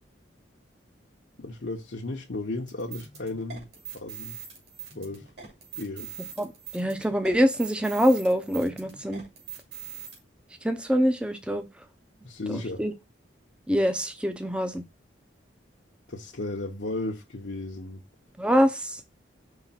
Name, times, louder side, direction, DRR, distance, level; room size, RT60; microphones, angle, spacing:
voice 1, 1.4-3.7 3.9-4.4 4.9-5.3 5.8-6.1 12.2-12.8 16.1-18.0, left 2 dB, 70° left, 0.9 m, -34 dB
sound 1, 2.7-10.2, right 8 dB, 60° right, 2.7 m, -42 dB
voice 2, 6.7-9.2 10.6-11.6 12.5-12.9 13.7-14.8 18.4-19.0, equal, 5° right, 0.6 m, -24 dB
5.7 x 3.3 x 5.7 m
head